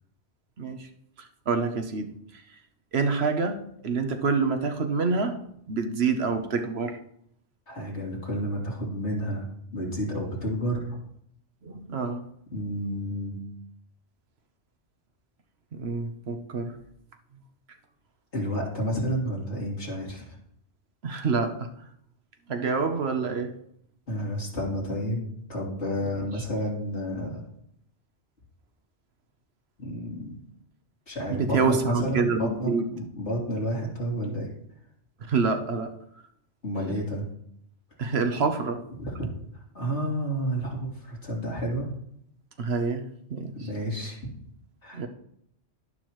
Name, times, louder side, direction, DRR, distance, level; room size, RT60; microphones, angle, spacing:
voice 1, 0.6-0.9 1.5-2.1 2.9-5.4 5.7-7.0 11.6-12.2 15.7-16.8 21.0-21.7 22.5-23.5 26.0-26.3 31.3-32.8 35.3-35.9 38.0-38.8 42.6-43.0 43.3-43.7 44.9-45.1, right 4 dB, 65° right, 1.2 m, -27 dB
voice 2, 7.7-9.5 9.7-11.0 12.5-13.4 18.3-20.4 24.1-25.2 25.5-27.4 29.8-30.3 31.1-34.5 36.6-37.3 39.0-39.3 39.7-41.9 43.6-44.3 44.8-45.1, equal, 75° left, 3.6 m, -30 dB
12.0 x 11.0 x 3.1 m
omnidirectional pair, 1.2 m